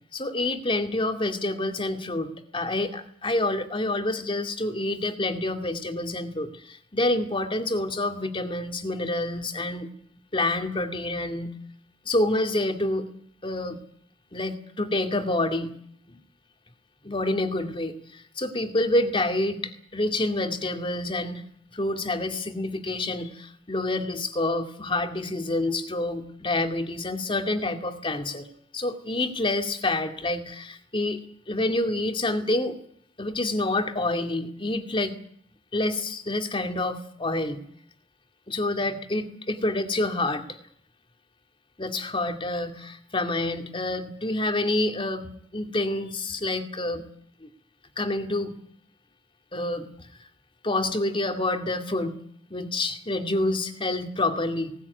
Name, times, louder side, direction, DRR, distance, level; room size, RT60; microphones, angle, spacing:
voice 1, 0.1-9.9 10.3-11.5 12.1-13.1 13.4-13.8 14.3-15.7 16.1-16.2 17.0-21.4 21.7-28.5 28.7-32.8 33.2-35.1 35.7-37.6 38.5-40.6 41.8-47.0 47.4-47.5 48.0-48.5 49.5-49.9 50.6-52.1 52.5-54.7, left 2 dB, 30° left, 6 dB, 2.2 m, -28 dB
19.5 x 19.0 x 9.5 m, 0.63 s
head